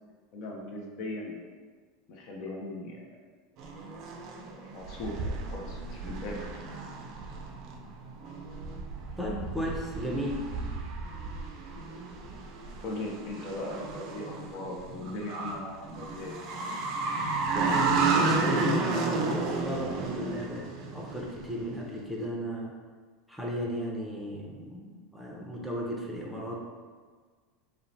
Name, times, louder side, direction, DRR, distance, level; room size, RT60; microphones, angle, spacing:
voice 1, 0.3-1.4 2.1-3.0 4.5-6.5 12.8-16.4, left 2 dB, 60° left, 0 dB, 0.4 m, -38 dB
sound 1, 3.6-21.6, right 3 dB, 55° right, 0.4 m, -32 dB
voice 2, 9.2-10.4 17.5-18.0 18.2-22.7 23.3-26.6, equal, 5° right, -3 dB, 0.5 m, -35 dB
2.8 x 2.1 x 2.6 m, 1.5 s
hypercardioid pair, 95°, 0 cm